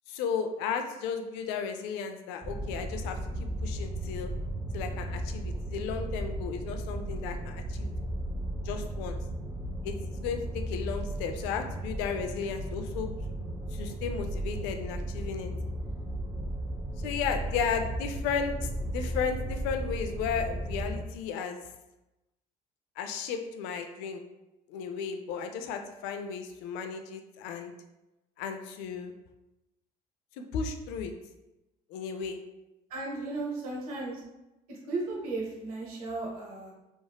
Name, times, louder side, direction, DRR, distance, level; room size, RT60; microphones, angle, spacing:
voice 1, 0.1-3.2 3.6-4.3 4.7-7.9 8.6-9.2 9.8-13.1 13.7-15.5 17.0-21.6 23.0-24.2 24.7-27.7 28.4-29.1 30.5-31.1 31.9-32.4, left 6 dB, 70° left, 6 dB, 0.4 m, -34 dB
sound 1, 2.4-21.0, right 1 dB, 15° right, 0.4 m, -35 dB
voice 2, 32.9-34.2 34.7-36.7, right 3 dB, 85° right, -4 dB, 0.8 m, -35 dB
3.2 x 2.5 x 2.2 m, 0.97 s
hypercardioid pair, 65°, 19 cm